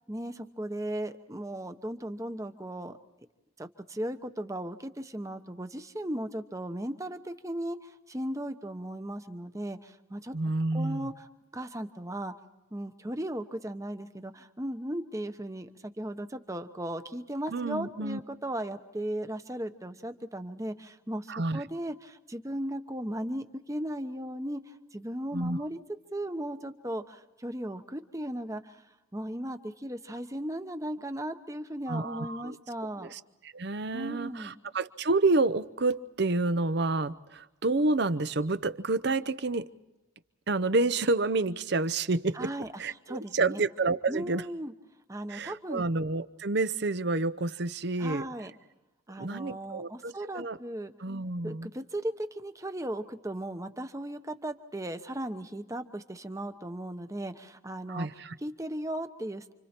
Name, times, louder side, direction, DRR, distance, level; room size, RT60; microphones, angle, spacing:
voice 1, 0.1-3.0 3.6-10.3 10.7-11.3 11.5-12.3 12.7-25.8 26.1-28.9 29.1-33.1 33.9-34.6 42.3-42.7 43.1-43.6 44.1-44.7 45.1-45.9 48.0-48.5 49.1-50.9 51.4-58.1 58.4-59.5, right 1 dB, 15° right, 9 dB, 1.0 m, -36 dB
voice 2, 10.3-11.1 17.5-18.2 21.3-21.6 25.3-25.6 31.9-32.6 33.0-39.7 40.5-42.5 42.8-44.4 45.3-48.3 49.2-50.6 51.0-51.7 57.9-58.3, right 3 dB, 55° right, 13 dB, 0.7 m, -29 dB
29.0 x 26.0 x 4.4 m, 1.0 s
head